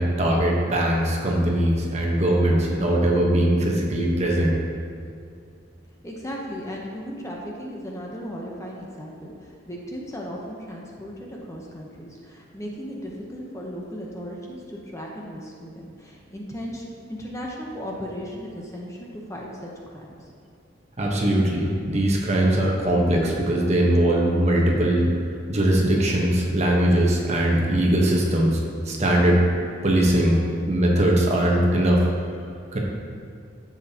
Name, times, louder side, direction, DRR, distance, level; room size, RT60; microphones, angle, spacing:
voice 1, 0.0-4.5 21.0-25.1 25.5-28.6 28.9-29.4 29.8-30.4 30.7-32.0 32.7-32.8, right 1 dB, 35° right, -1 dB, 1.2 m, -20 dB
voice 2, 6.0-20.3, equal, 15° left, -2 dB, 0.9 m, -36 dB
10.5 x 7.3 x 2.9 m, 2.4 s
head